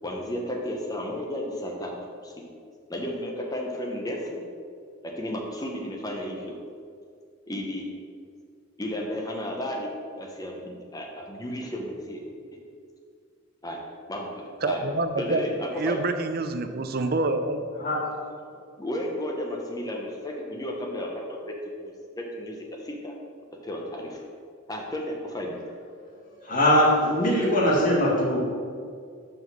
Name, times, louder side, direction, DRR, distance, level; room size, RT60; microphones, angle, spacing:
voice 1, 0.0-1.9 2.2-2.4 2.9-4.4 5.0-6.5 7.5-7.9 8.8-9.9 10.2-12.2 13.6-13.8 14.1-14.8 15.2-16.1 18.8-21.4 21.7-23.1 23.6-24.2 24.7-25.6, left 1 dB, 20° left, 0 dB, 1.0 m, -33 dB
voice 2, 14.6-15.5 15.8-17.7, right 2 dB, 45° right, 8 dB, 0.5 m, -27 dB
voice 3, 26.4-28.4, left 1 dB, 40° left, -4 dB, 1.8 m, -21 dB
5.8 x 5.2 x 6.1 m, 2.2 s
head